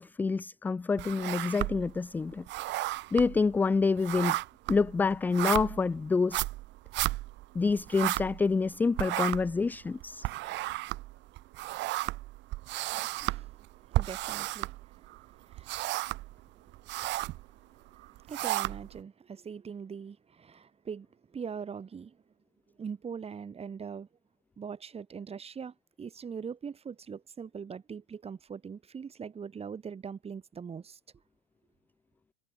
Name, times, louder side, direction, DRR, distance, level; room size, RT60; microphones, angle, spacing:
voice 1, 0.0-2.5 3.1-4.4 4.7-6.4 7.5-10.3, left 4 dB, 5° left, 0.4 m, -27 dB
sound 1, 1.0-2.0 2.3-8.7 8.9-15.2 15.5-16.3 16.7-17.4 18.0-19.0, right 18 dB, 35° right, 1.9 m, -33 dB
voice 2, 13.1-13.5 13.9-14.7 15.4-15.7 18.3-21.1 21.3-22.2 22.8-24.1 24.6-31.0, right 6 dB, 20° right, 6.7 m, -41 dB
figure-of-eight pair, 90°, 32 cm